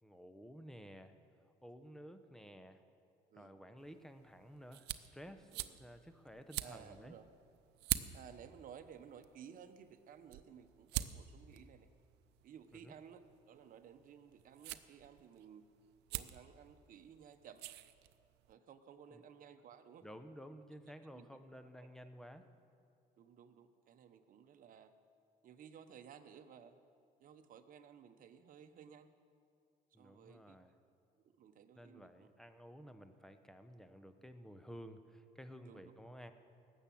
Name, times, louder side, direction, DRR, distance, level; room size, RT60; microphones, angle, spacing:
voice 1, 0.0-1.1 1.6-2.8 3.3-7.1 12.7-12.9 19.1-19.2 20.0-22.4 29.9-30.7 31.8-36.3, equal, 5° left, 9 dB, 0.9 m, -53 dB
voice 2, 3.3-3.6 5.5-5.8 6.6-7.3 8.1-11.9 12.4-15.6 16.1-17.6 18.5-20.1 21.1-21.4 23.2-24.9 25.4-26.8 27.2-29.1 30.0-30.6 31.2-32.3 35.6-35.9, right 8 dB, 55° right, 8 dB, 1.0 m, -57 dB
sound 1, 3.8-18.5, right 15 dB, 85° right, 0.6 m, -47 dB
18.5 x 7.3 x 8.6 m, 2.4 s
cardioid pair, 110°, 17 cm